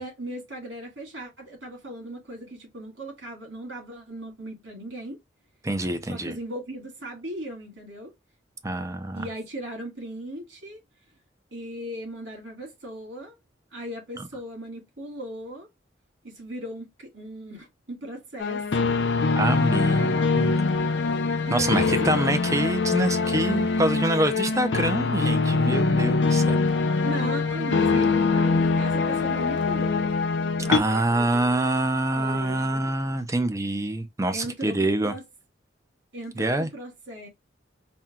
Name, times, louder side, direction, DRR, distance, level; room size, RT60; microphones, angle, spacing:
voice 1, 0.0-5.2 6.0-8.1 9.1-10.8 11.5-13.3 13.7-15.7 16.2-18.9 21.5-22.5 27.0-30.1 30.6-31.5 32.1-32.9 34.3-35.2 36.1-37.3, right 1 dB, 80° right, 2.5 m, -37 dB
voice 2, 5.6-6.4 8.6-9.3 14.2-14.3 19.3-20.7 21.3-26.6 30.7-35.1 36.4-36.7, right 1 dB, 15° right, 0.5 m, -26 dB
sound 1, 18.4-30.8, left 4 dB, 70° left, 0.5 m, -23 dB
4.3 x 2.3 x 3.6 m
head